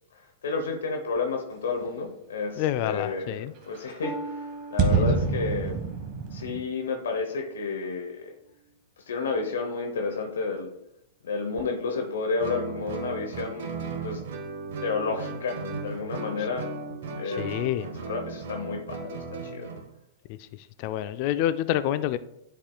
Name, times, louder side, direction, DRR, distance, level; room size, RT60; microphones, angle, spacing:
voice 1, 0.4-5.8 6.3-8.3 9.1-10.7 11.2-13.7 14.0-14.2 14.8-16.7 17.1-19.7, left 4 dB, 75° left, 4 dB, 0.8 m, -31 dB
voice 2, 2.6-3.5 4.9-5.0 17.3-17.9 20.3-20.4 20.8-22.2, left 12 dB, 50° left, 13 dB, 0.3 m, -28 dB
sound 1, 3.7-3.8 4.0-4.1 4.8-6.6, right 4 dB, 40° right, 1.3 m, -25 dB
Harp, 4.0-7.8 8.3-8.7 9.3-9.5, right 2 dB, ahead, 2.2 m, -42 dB
Guitar, 12.4-19.9, right 4 dB, 65° right, 1.0 m, -36 dB
10.0 x 4.9 x 2.3 m, 0.80 s
hypercardioid pair, 105°, 0 cm